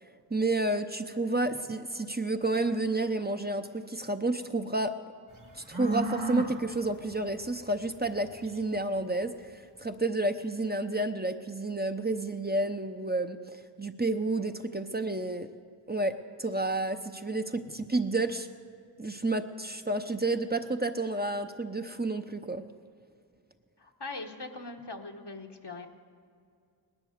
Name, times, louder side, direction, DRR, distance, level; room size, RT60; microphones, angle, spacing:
voice 1, 0.3-4.9 5.7-15.5 15.9-18.5 19.0-22.6, right 2 dB, 25° right, 7 dB, 0.8 m, -30 dB
sound 1, 5.3-9.3, right 2 dB, 45° right, 1.9 m, -36 dB
voice 2, 23.8-25.9, left 3 dB, 70° left, 3 dB, 1.4 m, -41 dB
19.0 x 10.5 x 6.6 m, 2.3 s
wide cardioid pair, 40°, 42 cm